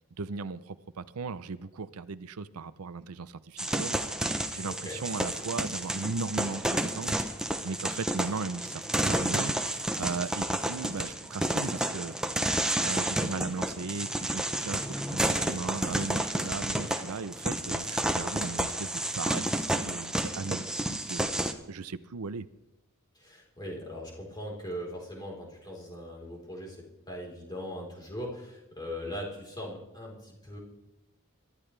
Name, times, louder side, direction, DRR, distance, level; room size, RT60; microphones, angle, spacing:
voice 1, 0.2-7.3 7.6-9.5 10.0-12.1 12.8-21.3 21.7-22.5, right 4 dB, 85° right, 15 dB, 0.6 m, -37 dB
sound 1, 3.6-21.5, right 1 dB, 5° right, 0.8 m, -31 dB
voice 2, 4.6-5.0 23.2-30.6, equal, 20° left, -2 dB, 3.9 m, -40 dB
23.5 x 12.5 x 3.3 m, 0.89 s
head